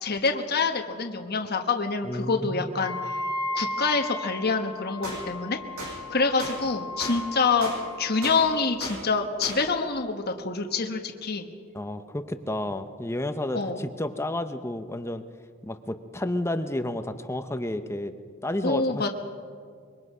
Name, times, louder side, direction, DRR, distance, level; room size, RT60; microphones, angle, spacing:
voice 1, 0.0-3.1 3.5-5.6 6.1-7.7 8.0-11.5 13.5-13.8 18.6-19.1, left 4 dB, 50° left, 4 dB, 1.2 m, -26 dB
voice 2, 2.0-2.9 11.7-15.2 15.6-18.1 18.4-19.1, left 1 dB, 10° left, 9 dB, 0.7 m, -31 dB
Wind instrument woodwind instrument, 2.7-8.6, left 1 dB, 30° right, 6.8 m, -35 dB
sound 1, 5.0-5.2 5.8-5.9 6.4-6.5 7.0-7.2 7.6-7.8 8.2-8.4 8.8-9.0 9.4-9.6, right 2 dB, 90° right, 8.0 m, -35 dB
25.0 x 23.0 x 5.6 m, 2.1 s
head